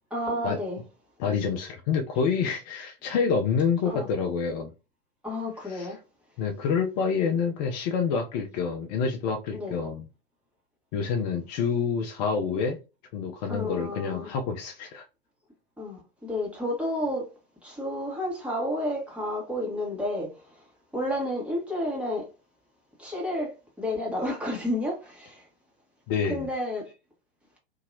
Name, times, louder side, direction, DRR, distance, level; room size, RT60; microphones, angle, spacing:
voice 1, 0.1-0.8 3.8-4.1 5.2-6.0 9.5-9.8 13.5-14.3 15.8-17.3 17.6-20.6 20.9-22.3 23.0-25.5 26.2-26.9, left 1 dB, 5° right, 1.4 m, -31 dB
voice 2, 1.2-4.7 5.7-5.9 6.4-10.0 10.9-12.8 13.1-15.0 26.1-26.5, left 6 dB, 45° left, 0.6 m, -27 dB
2.9 x 2.7 x 2.5 m
figure-of-eight pair, 90°, 29 cm